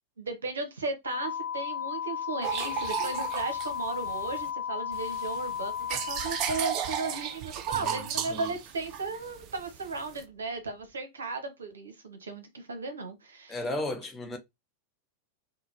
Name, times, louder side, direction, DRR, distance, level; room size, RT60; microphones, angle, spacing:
voice 1, 0.2-13.7 14.3-14.4, right 3 dB, 70° right, 0.9 m, -36 dB
sound 1, 1.0-7.4, left 8 dB, 55° left, 0.9 m, -35 dB
sound 2, 2.4-4.5 4.9-10.2, right 9 dB, 40° right, 0.4 m, -34 dB
voice 2, 13.5-14.4, left 2 dB, 15° left, 0.7 m, -34 dB
3.7 x 2.1 x 2.9 m
figure-of-eight pair, 90°, 0 cm